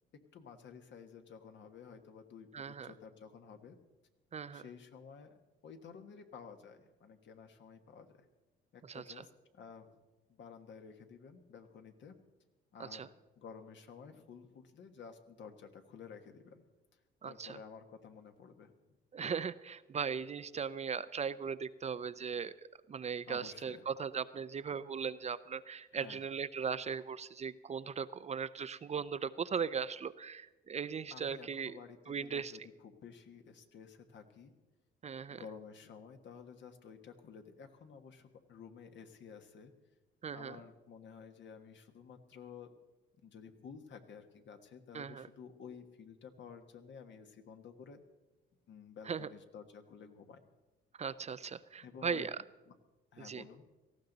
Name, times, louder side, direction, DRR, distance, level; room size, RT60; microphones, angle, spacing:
voice 1, 0.3-3.8 4.5-5.4 5.6-8.3 8.7-10.0 10.4-12.1 12.7-16.6 17.2-18.7 23.3-23.9 25.9-26.2 31.1-34.5 35.3-39.7 40.3-42.7 43.2-48.0 48.7-50.4 51.8-52.3 52.6-52.7 53.1-53.6, left 6 dB, 65° left, 6 dB, 1.4 m, -52 dB
voice 2, 2.5-2.9 4.3-4.7 8.9-9.0 12.8-13.1 17.2-17.6 19.1-22.5 22.9-31.8 32.1-32.5 35.0-35.4 40.2-40.6 44.9-45.3 49.1-49.3 51.0-52.3 53.2-53.4, right 6 dB, 35° right, 15 dB, 0.5 m, -38 dB
18.0 x 14.5 x 4.0 m, 1.2 s
cardioid pair, 90°, 20 cm